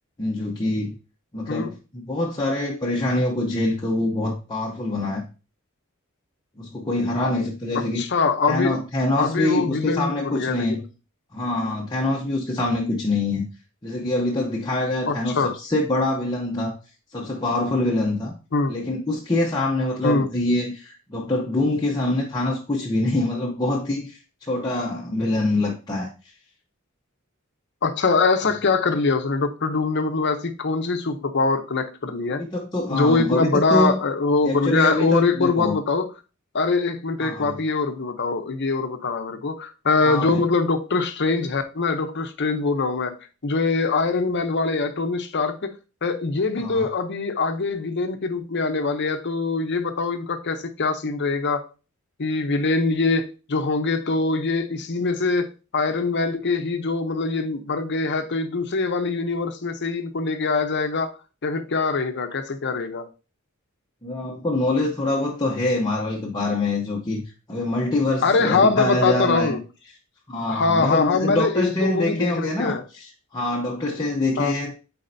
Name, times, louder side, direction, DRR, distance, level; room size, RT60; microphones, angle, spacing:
voice 1, 0.2-0.9 1.3-5.2 6.6-8.0 8.5-10.8 11.3-13.5 13.8-16.7 17.1-18.3 18.7-26.1 32.4-34.0 34.4-35.8 37.2-37.5 40.0-40.4 46.6-46.9 64.0-67.2 67.5-69.6 70.3-74.7, left 2 dB, 20° left, 0.8 m, -25 dB
voice 2, 8.0-8.7 9.2-10.8 15.1-15.5 18.5-18.7 20.0-20.3 27.8-32.4 32.9-36.1 36.5-43.1 43.4-45.7 46.0-51.6 52.2-55.5 55.7-61.1 61.4-63.0 68.2-69.6 70.5-72.8 74.4-74.5, left 4 dB, 55° left, 0.7 m, -23 dB
8.4 x 4.2 x 2.6 m
head